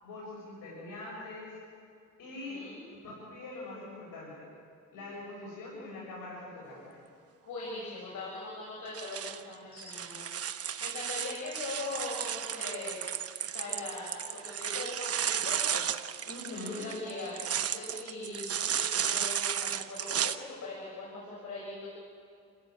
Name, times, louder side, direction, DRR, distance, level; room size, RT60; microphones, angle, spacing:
voice 1, 0.0-1.5 2.2-2.6 2.9-4.3 4.9-6.8 16.3-16.8, left 2 dB, 80° left, -5 dB, 7.6 m, -43 dB
voice 2, 2.3-2.8 7.5-15.9 16.5-21.9, left 2 dB, 65° left, -4 dB, 7.2 m, -41 dB
sound 1, 8.8-20.4, right 9 dB, 45° right, 1.0 m, -34 dB
28.5 x 16.0 x 8.8 m, 2.3 s
cardioid pair, 115°, 33 cm